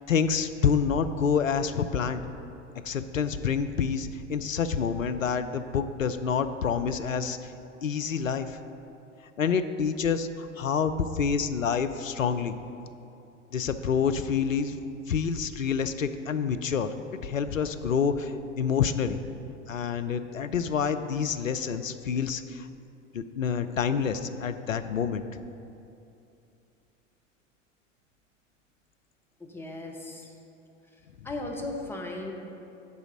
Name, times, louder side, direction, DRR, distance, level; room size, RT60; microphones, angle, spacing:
voice 1, 0.1-2.2 2.8-7.5 7.8-8.6 9.4-12.6 13.5-14.8 15.1-16.9 17.2-19.2 19.7-22.7 23.1-25.2, left 6 dB, 85° left, 10 dB, 0.5 m, -27 dB
voice 2, 29.4-30.3 31.2-32.3, left 2 dB, 5° left, -1 dB, 0.9 m, -36 dB
9.5 x 4.0 x 6.1 m, 2.7 s
figure-of-eight pair, 80°, 38 cm